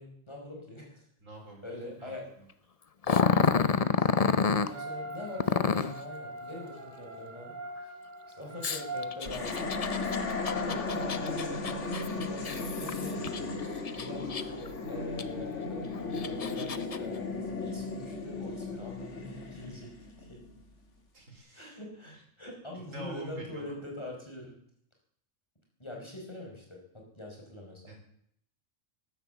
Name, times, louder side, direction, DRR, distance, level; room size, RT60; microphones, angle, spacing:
voice 1, 0.0-1.0 1.6-2.3 3.2-4.2 4.6-7.5 7.8-7.9 8.3-9.6 10.4-11.5 12.1-13.6 14.0-20.5 21.5-24.6 25.8-27.9, left 1 dB, 20° left, 0 dB, 4.8 m, -44 dB
voice 2, 1.2-2.1 21.1-21.7 22.1-22.2 22.9-23.8 27.9-28.0, right 2 dB, 85° right, 2 dB, 4.3 m, -46 dB
Growling, 3.0-4.7 5.4-6.0 8.6-13.4 13.9-14.7 15.2-15.3 16.0-17.0, left 5 dB, 40° left, 0.6 m, -28 dB
sound 1, 4.7-9.2, right 1 dB, 35° right, 2.5 m, -42 dB
sound 2, 9.2-20.6, left 3 dB, 65° left, 2.4 m, -35 dB
13.5 x 10.5 x 8.0 m, 0.68 s
omnidirectional pair, 1.3 m